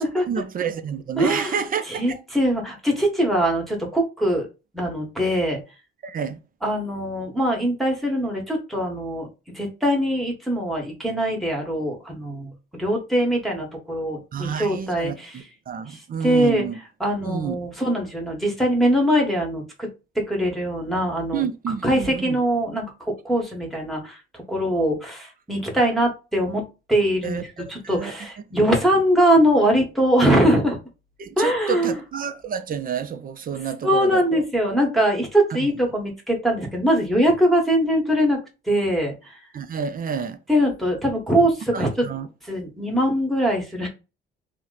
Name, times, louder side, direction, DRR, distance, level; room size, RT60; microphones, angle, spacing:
voice 1, 0.0-2.2 6.0-6.4 14.3-16.8 17.2-17.6 21.3-22.4 27.2-27.4 27.8-28.1 31.2-34.4 35.5-35.7 39.5-40.4 41.7-42.3, right 7 dB, 45° right, 0.5 m, -29 dB
voice 2, 1.2-1.6 1.9-4.5 4.7-5.6 6.6-9.3 9.5-15.4 15.9-16.7 17.0-19.9 20.1-21.4 21.8-26.6 26.9-30.8 31.4-32.0 33.8-39.4 40.5-42.1 42.4-43.9, equal, ahead, 1.2 m, -22 dB
2.9 x 2.2 x 3.8 m
cardioid pair, 90°, 20 cm